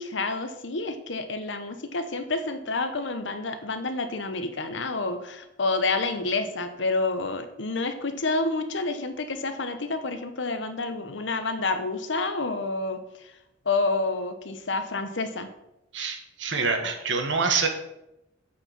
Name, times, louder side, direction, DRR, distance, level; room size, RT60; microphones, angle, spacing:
voice 1, 0.0-13.3 13.6-15.5, left 3 dB, 70° left, 9 dB, 0.9 m, -29 dB
voice 2, 15.9-17.7, right 4 dB, 70° right, 6 dB, 1.2 m, -26 dB
8.6 x 4.5 x 5.9 m, 0.88 s
head